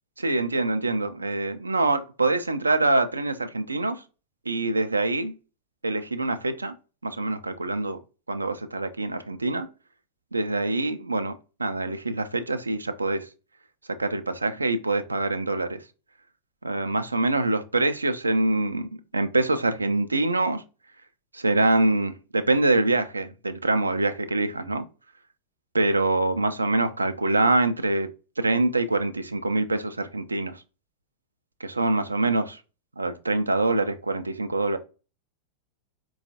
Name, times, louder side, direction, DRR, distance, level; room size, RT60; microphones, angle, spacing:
voice 1, 0.2-4.0 4.5-5.3 5.8-6.7 7.0-8.0 8.3-9.7 10.3-11.3 11.6-13.3 14.0-15.8 16.6-20.6 21.3-24.8 25.7-28.1 28.4-30.6 31.6-32.6 33.0-34.8, right 2 dB, 80° right, 0.3 m, -25 dB
4.2 x 2.3 x 2.7 m
figure-of-eight pair, 90°, 0 cm